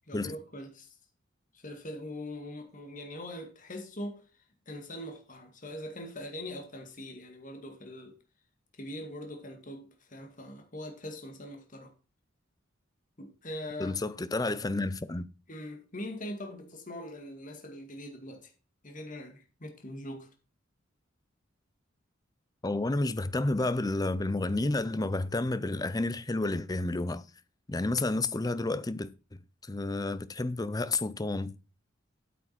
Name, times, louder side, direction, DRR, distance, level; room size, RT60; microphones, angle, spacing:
voice 1, 0.1-0.9 1.5-4.2 4.7-8.2 8.8-11.9 13.2-14.0 15.5-18.5 18.8-20.3, left 1 dB, 40° left, 2.1 m, -42 dB
voice 2, 13.8-15.3 22.6-27.2 27.7-29.4 29.7-31.6, left 2 dB, 20° left, 0.5 m, -30 dB
8.7 x 8.4 x 4.2 m
head